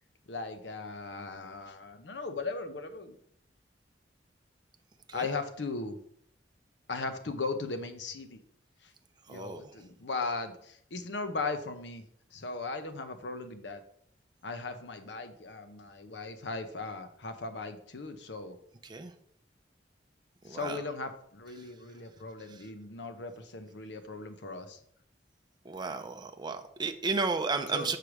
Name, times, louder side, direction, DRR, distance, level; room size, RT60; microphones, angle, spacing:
voice 1, 0.3-3.2 5.1-6.0 6.9-8.4 8.8-8.9 9.3-12.1 12.3-13.8 14.4-18.6 20.5-24.8 27.7-28.0, left 3 dB, 75° left, 8 dB, 0.8 m, -38 dB
voice 2, 9.3-9.7 18.8-19.1 20.4-20.8 22.5-22.7 25.6-28.0, right 4 dB, 25° right, 6 dB, 0.5 m, -33 dB
6.7 x 3.3 x 6.0 m, 0.67 s
head